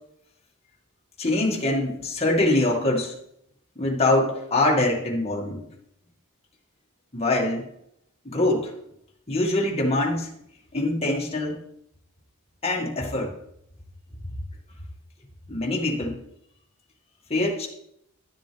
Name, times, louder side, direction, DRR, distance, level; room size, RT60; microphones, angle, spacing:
voice 1, 1.2-3.1 3.8-5.6 7.1-7.7 8.2-8.7 9.3-10.3 10.7-11.6 12.6-13.3 15.5-16.2 17.3-17.7, left 2 dB, 30° left, -2 dB, 2.1 m, -24 dB
12.0 x 7.6 x 3.5 m, 0.73 s
head